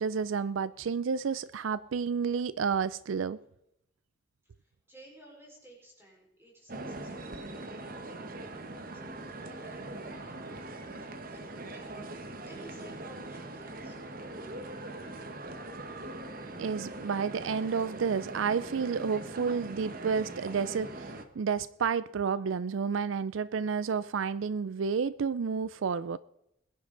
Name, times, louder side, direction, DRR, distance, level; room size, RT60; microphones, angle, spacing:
voice 1, 0.0-3.4 16.6-26.2, right 6 dB, 80° right, 0.4 m, -30 dB
voice 2, 4.4-11.0 11.3-14.0, right 1 dB, 10° right, 4.6 m, -55 dB
sound 1, 6.7-21.2, right 2 dB, 45° right, 1.2 m, -42 dB
21.5 x 10.5 x 3.9 m
head